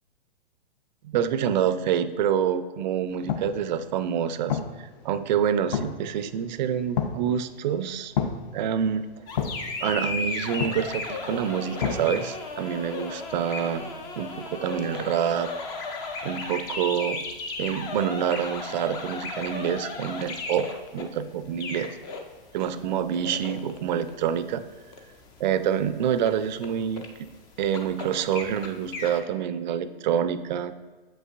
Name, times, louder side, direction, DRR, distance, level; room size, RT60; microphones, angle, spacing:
voice 1, 1.0-8.1 8.5-9.1 9.8-13.9 14.2-15.5 15.8-16.0 16.2-17.2 17.6-21.9 22.5-24.6 25.4-27.0 27.6-30.7, right 8 dB, 50° right, 12 dB, 0.4 m, -27 dB
sound 1, 3.1-12.1, left 7 dB, 45° left, 0.6 m, -34 dB
sound 2, 9.3-29.2, left 3 dB, 15° left, 0.3 m, -35 dB
7.4 x 5.4 x 2.5 m, 1.3 s
hypercardioid pair, 125°, 29 cm